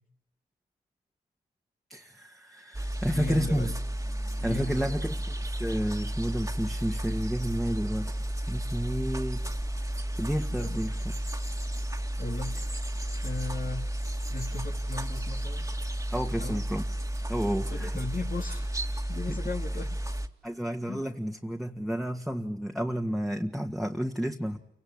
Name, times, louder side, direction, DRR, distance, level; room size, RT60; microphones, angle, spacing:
voice 1, 1.9-3.7 4.4-8.1 8.5-9.5 10.2-11.0 16.1-16.8 17.3-17.9 19.3-19.4 20.4-24.6, equal, ahead, 2 dB, 2.1 m, -31 dB
sound 1, 2.7-20.3, right 1 dB, 15° right, 2.3 m, -32 dB
voice 2, 3.1-3.8 4.4-5.0 10.5-10.8 12.2-12.6 13.2-13.9 14.3-15.7 16.4-16.7 17.7-18.8 19.1-20.0 20.9-21.0, left 3 dB, 45° left, 2 dB, 2.6 m, -37 dB
29.0 x 18.0 x 10.0 m, 0.78 s
supercardioid pair, 45°, 19 cm